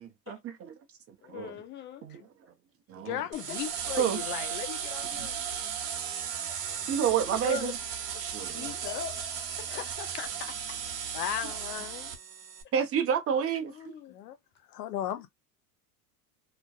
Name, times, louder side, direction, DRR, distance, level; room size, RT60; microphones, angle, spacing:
voice 1, 0.3-0.7 1.1-1.5 2.0-2.2 2.9-3.2 4.0-4.2 5.1-5.3 6.9-7.8 8.2-8.7 12.7-13.9, right 8 dB, 30° right, 0.6 m, -29 dB
voice 2, 1.2-2.2 3.1-3.6 6.3-6.6 8.4-9.2 9.6-10.8 13.7-14.2, left 9 dB, 25° left, 0.5 m, -42 dB
voice 3, 3.0-5.4 7.3-7.7 11.1-12.1 14.1-14.4 14.7-15.3, left 11 dB, 75° left, 0.7 m, -36 dB
sound 1, 3.3-12.6, right 8 dB, 80° right, 0.9 m, -36 dB
Bell, 8.9-10.2, left 12 dB, 50° left, 1.1 m, -48 dB
2.5 x 2.2 x 2.2 m
hypercardioid pair, 95°, 48 cm